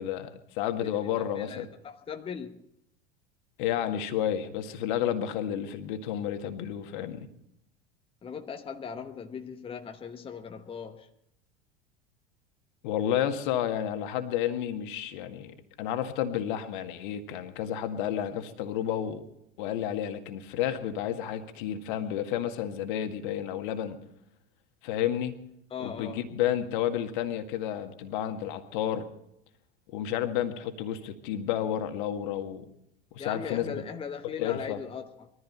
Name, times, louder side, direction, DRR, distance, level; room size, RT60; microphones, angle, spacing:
voice 1, 0.0-1.7 3.6-7.3 12.8-19.3 19.6-24.0 24.8-25.3 25.8-29.1 29.9-32.7 33.1-33.7 34.4-34.8, left 10 dB, 55° left, 1.9 m, -31 dB
voice 2, 0.8-2.6 8.2-11.1 23.9-24.0 25.7-26.3 33.2-35.3, left 6 dB, 20° left, 1.1 m, -39 dB
22.0 x 14.5 x 4.2 m
figure-of-eight pair, 75°, 29 cm